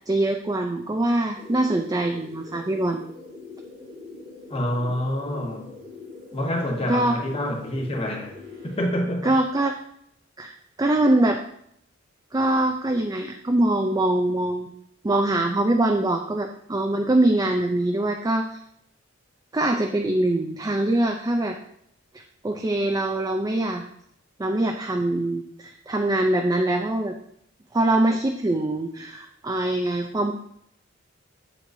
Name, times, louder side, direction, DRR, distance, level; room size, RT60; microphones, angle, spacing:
voice 1, 0.1-3.0 6.9-7.2 9.2-9.8 10.4-10.5 10.8-11.4 12.3-14.7 15.0-18.6 19.5-21.6 22.4-23.8 24.4-27.1 27.7-30.3, right 1 dB, 20° right, 0.4 m, -23 dB
sound 1, 1.3-8.9, left 3 dB, 85° right, 3.3 m, -42 dB
voice 2, 4.5-5.7 6.3-8.3 8.6-9.3, equal, 30° left, 1.3 m, -27 dB
7.7 x 7.2 x 2.7 m
head